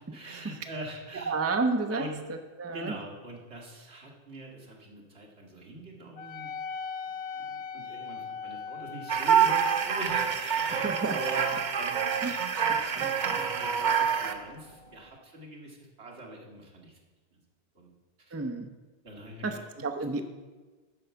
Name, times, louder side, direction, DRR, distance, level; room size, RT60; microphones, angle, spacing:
voice 1, 0.1-1.4 1.9-2.2 2.7-6.5 7.3-17.0 17.3-17.4 17.8-17.9 18.2-18.4 19.0-19.8, right 1 dB, 80° right, -1 dB, 2.0 m, -43 dB
voice 2, 1.3-2.0 2.6-2.9 10.8-11.2 12.2-13.1 18.3-18.7 19.4-20.2, right 3 dB, 20° right, 6 dB, 0.5 m, -31 dB
Wind instrument woodwind instrument, 6.2-15.1, left 5 dB, 75° left, 0.9 m, -42 dB
sound 1, 9.1-14.3, right 7 dB, 50° right, 0.7 m, -26 dB
10.5 x 4.5 x 6.9 m, 1.2 s
omnidirectional pair, 1.1 m